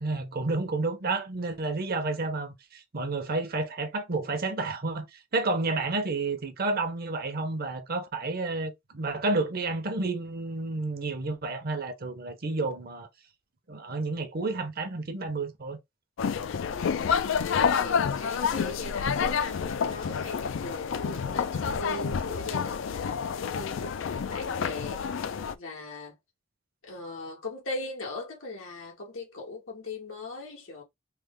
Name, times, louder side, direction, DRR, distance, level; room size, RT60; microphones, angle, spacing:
voice 1, 0.0-13.1 13.7-15.8, right 3 dB, 50° right, 0.8 m, -30 dB
sound 1, 16.2-25.5, left 6 dB, 70° left, 0.4 m, -29 dB
voice 2, 16.7-23.9 24.3-26.1 26.8-30.8, left 2 dB, 90° left, 1.4 m, -39 dB
3.3 x 2.1 x 3.6 m
head